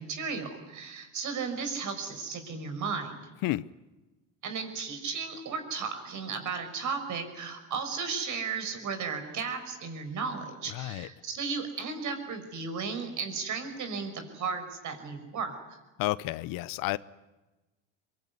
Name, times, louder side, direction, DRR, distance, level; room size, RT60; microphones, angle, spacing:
voice 1, 0.0-3.2 4.4-15.8, right 5 dB, 55° right, 5.9 m, -35 dB
voice 2, 10.7-11.1 16.0-17.0, left 18 dB, 65° left, 0.8 m, -31 dB
23.0 x 23.0 x 9.7 m
supercardioid pair, 80°, 36 cm